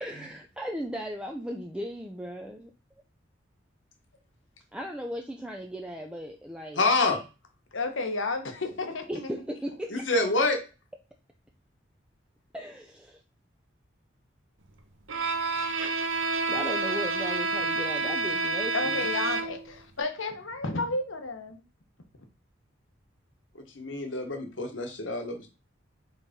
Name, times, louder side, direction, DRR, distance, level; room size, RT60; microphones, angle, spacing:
voice 1, 0.0-3.0 4.7-6.8 9.1-10.0 12.5-13.2 16.5-19.1, equal, 5° right, 2 dB, 0.5 m, -37 dB
voice 2, 6.8-7.2 9.9-10.6 23.5-25.5, left 2 dB, 70° left, 4 dB, 1.4 m, -27 dB
voice 3, 7.7-9.3 18.7-21.6, left 3 dB, 85° left, 6 dB, 1.2 m, -32 dB
Bowed string instrument, 15.1-19.8, right 3 dB, 90° right, 1.0 m, -29 dB
4.7 x 4.2 x 5.2 m, 0.31 s
head